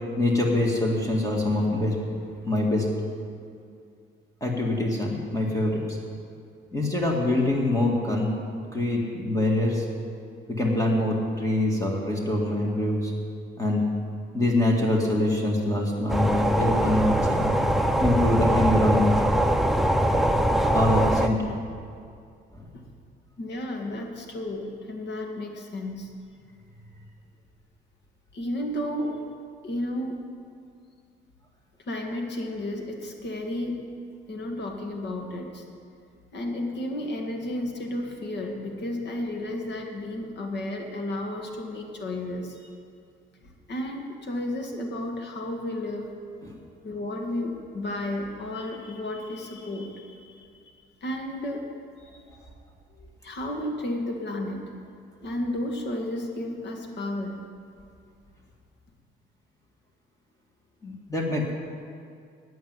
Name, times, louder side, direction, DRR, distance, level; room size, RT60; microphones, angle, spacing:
voice 1, 0.2-2.0 2.4-2.9 4.4-6.0 6.7-8.3 8.7-9.8 10.5-13.1 13.6-13.8 14.3-17.5 18.0-19.2 20.7-21.5 22.5-22.7 46.4-46.6 60.8-61.5, left 1 dB, 15° left, -2 dB, 2.0 m, -24 dB
sound 1, 16.1-21.3, right 1 dB, ahead, 0.7 m, -22 dB
voice 2, 23.4-26.1 28.3-29.2 29.6-30.2 31.8-33.9 34.3-35.6 36.3-42.7 43.4-46.1 46.8-50.7 51.0-51.7 52.0-52.2 53.2-54.6 55.2-57.4, left 1 dB, 60° left, 2 dB, 2.0 m, -32 dB
9.4 x 8.6 x 9.4 m, 2.3 s
cardioid pair, 90°, 20 cm